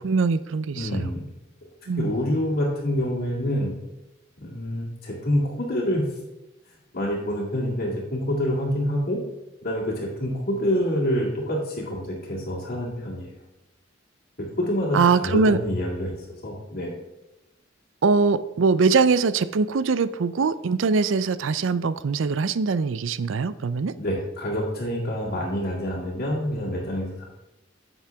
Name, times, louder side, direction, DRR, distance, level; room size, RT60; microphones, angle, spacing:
voice 1, 0.0-1.1 1.9-2.1 14.9-15.6 18.0-23.9, right 4 dB, 70° right, 15 dB, 0.5 m, -22 dB
voice 2, 0.7-1.2 2.0-3.7 4.4-6.1 6.9-9.2 9.6-13.3 14.4-16.9 24.0-27.2, equal, 50° left, -8 dB, 2.2 m, -27 dB
11.0 x 7.3 x 3.5 m, 0.97 s
head